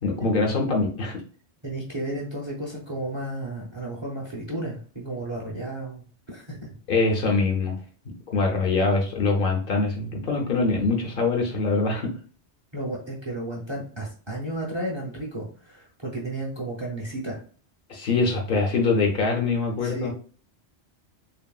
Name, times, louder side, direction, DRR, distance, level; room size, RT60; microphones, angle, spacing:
voice 1, 0.0-1.2 6.9-7.8 8.3-12.1 17.9-20.1, left 3 dB, 60° left, 1 dB, 0.7 m, -23 dB
voice 2, 1.6-6.6 12.7-17.4 19.8-20.1, right 1 dB, 35° right, -2 dB, 0.5 m, -33 dB
2.9 x 2.6 x 2.2 m, 0.43 s
omnidirectional pair, 1.1 m